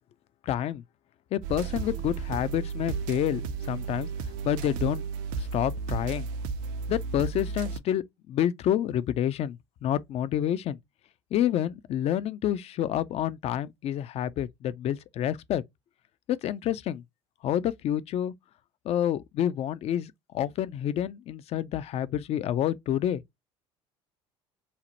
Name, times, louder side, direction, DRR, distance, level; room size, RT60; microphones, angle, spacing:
voice 1, 0.4-0.8 1.3-3.4 3.7-4.1 4.4-5.0 5.4-6.3 6.9-10.8 11.3-15.6 16.3-17.0 17.4-18.3 18.9-23.2, left 11 dB, 45° left, 0.4 m, -28 dB
sound 1, 1.4-7.8, right 5 dB, 65° right, 0.4 m, -33 dB
2.8 x 2.0 x 2.8 m
hypercardioid pair, 65°, 15 cm